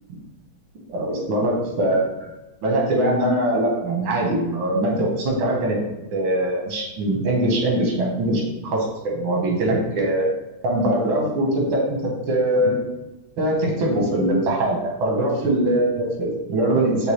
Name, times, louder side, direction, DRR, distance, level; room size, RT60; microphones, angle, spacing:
voice 1, 0.9-2.1 2.6-5.8 6.1-10.3 10.6-12.8 13.4-17.1, right 1 dB, 85° right, -1 dB, 1.9 m, -22 dB
4.6 x 3.3 x 3.1 m, 1.0 s
omnidirectional pair, 2.2 m